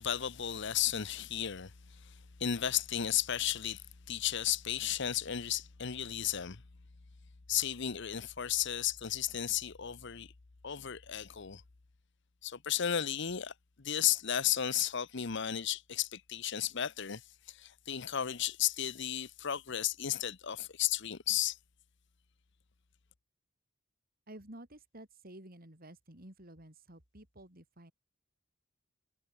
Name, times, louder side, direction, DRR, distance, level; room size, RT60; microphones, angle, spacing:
voice 1, 0.0-1.7 2.0-2.1 2.4-6.6 7.5-10.3 10.6-11.6 12.4-17.2 17.5-21.6, left 10 dB, 65° left, 0.9 m, -34 dB
voice 2, 24.3-27.9, right 1 dB, 50° right, 5.0 m, -52 dB
head